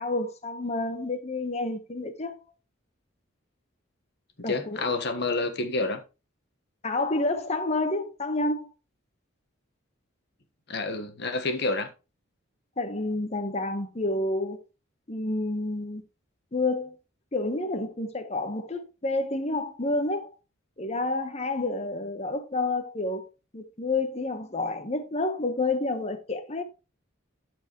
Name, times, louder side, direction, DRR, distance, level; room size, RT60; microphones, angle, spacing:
voice 1, 0.0-2.4 4.4-4.9 6.8-8.7 12.8-14.6 15.1-16.0 16.5-16.9 17.3-20.3 20.8-23.3 23.5-26.6, left 2 dB, 30° left, 1.0 m, -29 dB
voice 2, 4.5-6.0 10.7-11.9, left 3 dB, 55° left, 1.3 m, -28 dB
13.5 x 4.6 x 3.0 m
head